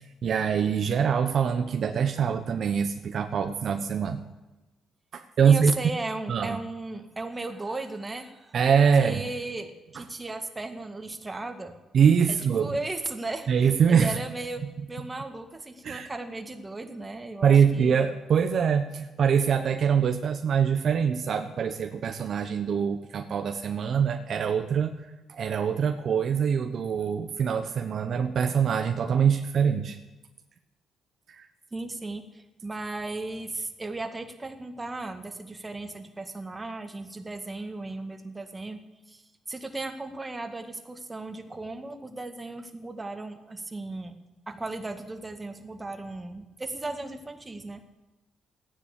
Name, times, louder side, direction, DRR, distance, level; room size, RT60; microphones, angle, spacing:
voice 1, 0.0-4.2 5.1-5.7 6.3-6.6 8.5-9.2 11.9-12.7 13.5-14.2 15.8-16.1 17.4-24.9 25.3-30.0 31.3-31.5, right 7 dB, 60° right, 7 dB, 1.0 m, -24 dB
voice 2, 5.4-8.5 9.0-11.7 12.3-14.6 14.9-18.0 31.7-38.8 39.1-39.2 39.5-44.1 44.5-47.8, right 2 dB, 20° right, 6 dB, 1.9 m, -36 dB
15.0 x 10.0 x 8.4 m, 1.1 s
cardioid pair, 80°, 0 cm